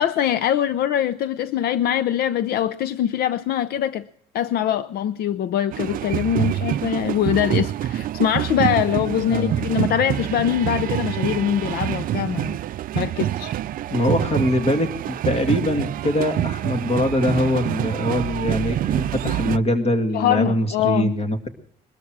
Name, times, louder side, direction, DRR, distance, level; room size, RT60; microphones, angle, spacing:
voice 1, 0.0-4.1 4.3-12.6 12.9-13.5 20.1-21.1, left 10 dB, 70° left, 0.6 m, -23 dB
sound 1, 5.7-19.6, right 12 dB, 55° right, 0.5 m, -26 dB
voice 2, 13.9-21.5, left 1 dB, 35° left, 2.4 m, -23 dB
21.5 x 13.0 x 4.8 m
cardioid pair, 110°, 17 cm